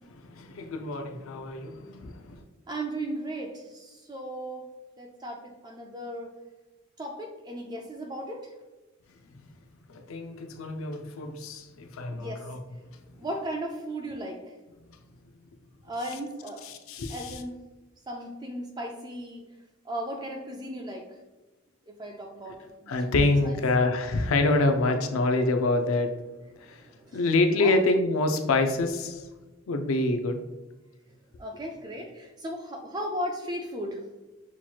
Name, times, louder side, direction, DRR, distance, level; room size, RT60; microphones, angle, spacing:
voice 1, 0.1-2.4 9.9-12.6 16.6-17.4 22.9-26.1 26.6-26.8 27.1-29.2 29.7-30.4, left 2 dB, 80° left, 6 dB, 0.4 m, -26 dB
voice 2, 2.7-4.6 5.0-6.3 7.0-8.5 12.1-12.5 13.2-14.5 15.8-16.7 17.1-17.6 18.1-19.4 19.8-21.2 21.9-23.2 23.4-23.6 26.8-27.2 27.6-27.8 31.4-34.0, right 1 dB, 20° right, 2 dB, 0.3 m, -36 dB
5.7 x 2.9 x 2.3 m, 1.1 s
head